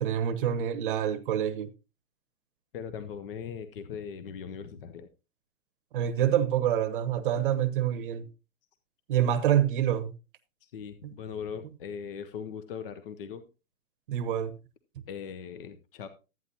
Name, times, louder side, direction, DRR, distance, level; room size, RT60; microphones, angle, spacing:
voice 1, 0.0-1.7 5.9-8.3 9.1-10.1 11.0-11.1 14.1-14.5, right 10 dB, 35° right, 0.9 m, -26 dB
voice 2, 2.7-5.1 10.6-13.4 15.1-16.1, left 7 dB, 40° left, 0.7 m, -39 dB
13.0 x 9.2 x 2.7 m
hypercardioid pair, 150°, 43 cm